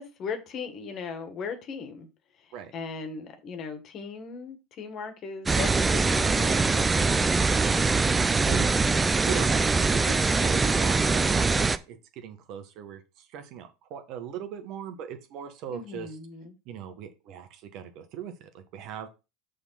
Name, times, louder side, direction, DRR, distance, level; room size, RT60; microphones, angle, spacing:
voice 1, 0.0-2.1 2.7-7.4 15.7-16.6, left 5 dB, 45° left, 1.8 m, -37 dB
sound 1, 5.5-11.8, right 4 dB, 15° right, 0.6 m, -23 dB
voice 2, 7.6-8.7 9.2-16.1 16.6-19.1, right 8 dB, 55° right, 1.5 m, -39 dB
6.7 x 3.9 x 5.8 m
hypercardioid pair, 90°, 0 cm